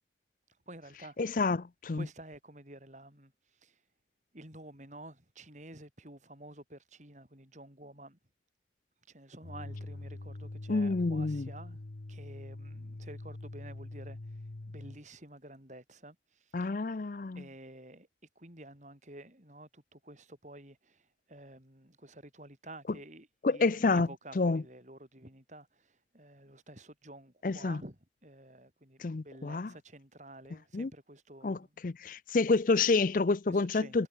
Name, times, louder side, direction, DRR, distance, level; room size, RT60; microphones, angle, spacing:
voice 1, 0.7-1.2 1.9-3.8 4.3-8.2 9.0-11.8 12.1-16.8 17.3-18.1 18.4-31.8 33.5-34.1, right 1 dB, 40° right, 7.9 m, -51 dB
voice 2, 1.2-2.0 10.7-11.5 16.5-17.4 23.4-24.1 24.4-24.6 27.4-27.8 29.0-29.7 30.7-30.9 31.4-31.6 31.8-34.1, left 3 dB, 50° left, 0.5 m, -28 dB
sound 1, 9.4-15.0, left 2 dB, 80° left, 1.1 m, -44 dB
head